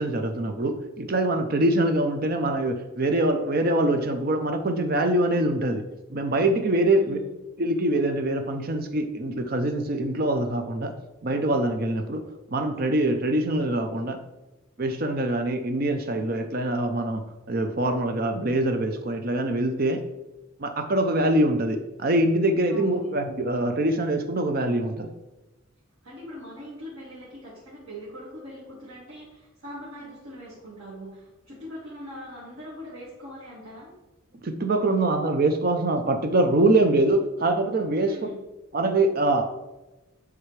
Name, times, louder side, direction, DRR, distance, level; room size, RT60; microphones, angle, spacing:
voice 1, 0.0-7.2 7.6-10.9 11.2-14.2 14.8-20.0 20.6-25.1 34.4-38.3 38.7-39.5, right 1 dB, 45° right, 6 dB, 0.6 m, -24 dB
voice 2, 6.9-7.3 22.7-23.2 26.0-33.9 38.0-38.4, equal, 85° right, -8 dB, 2.0 m, -42 dB
9.7 x 3.5 x 3.2 m, 1.1 s
head